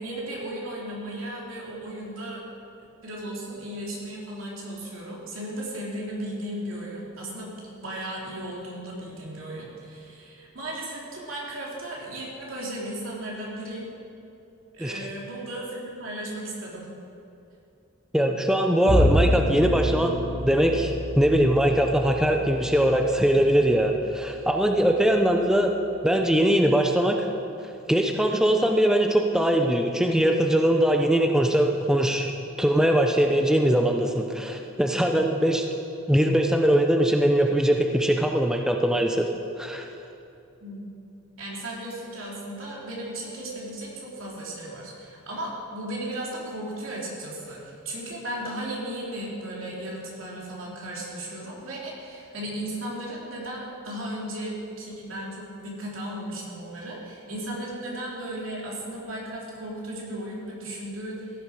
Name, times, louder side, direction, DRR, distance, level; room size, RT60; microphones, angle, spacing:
voice 1, 0.0-2.4 3.0-13.9 14.7-16.9 40.6-40.8 41.4-61.3, right 1 dB, 85° right, -4 dB, 2.8 m, -35 dB
voice 2, 18.1-25.7 26.0-27.2 27.9-32.3 32.6-35.7 36.1-39.3 39.6-39.8, right 1 dB, 5° right, 3 dB, 0.5 m, -21 dB
Bowed string instrument, 18.9-25.3, equal, 40° left, 2.9 m, -28 dB
15.5 x 6.9 x 4.8 m, 2.7 s
head